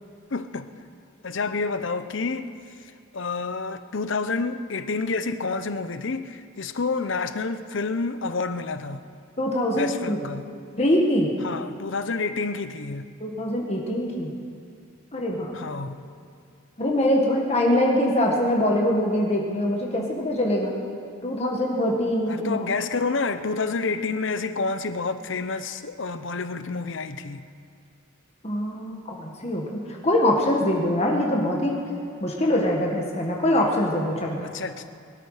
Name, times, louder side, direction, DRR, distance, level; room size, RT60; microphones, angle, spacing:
voice 1, 0.3-0.7 1.2-2.5 2.8-9.0 9.7-10.5 11.4-13.1 15.5-16.0 22.3-27.4 34.4-34.8, left 4 dB, 60° left, 11 dB, 0.7 m, -29 dB
voice 2, 9.4-10.2 10.8-11.3 13.2-14.3 15.1-15.5 16.8-20.7 21.2-22.6 28.4-31.8 32.2-34.4, left 1 dB, 30° left, -1 dB, 1.7 m, -23 dB
22.5 x 13.0 x 5.0 m, 2.4 s
head